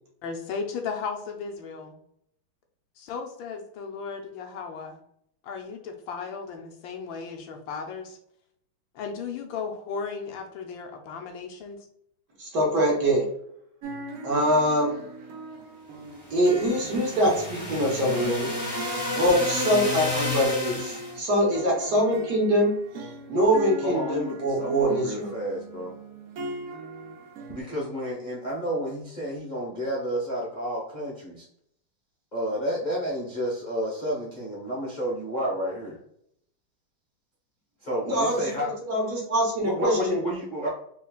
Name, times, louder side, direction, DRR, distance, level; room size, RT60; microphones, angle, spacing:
voice 1, 0.2-2.0 3.0-5.0 5.4-8.2 8.9-11.8, left 5 dB, 75° left, 3 dB, 1.3 m, -35 dB
voice 2, 12.4-13.2 14.2-14.9 16.3-18.5 19.2-22.7 23.3-25.3 38.1-38.4 38.9-40.2, equal, 55° right, -2 dB, 1.6 m, -23 dB
sound 1, 13.8-20.2 20.6-27.6, right 1 dB, 80° right, 0.7 m, -39 dB
sound 2, 16.3-21.2, left 2 dB, 20° left, 1.0 m, -31 dB
voice 3, 23.8-25.9 27.5-31.5 32.3-36.0 37.8-38.7 39.6-40.7, equal, 40° left, -5 dB, 0.6 m, -31 dB
4.4 x 3.1 x 2.3 m, 0.69 s
omnidirectional pair, 2.3 m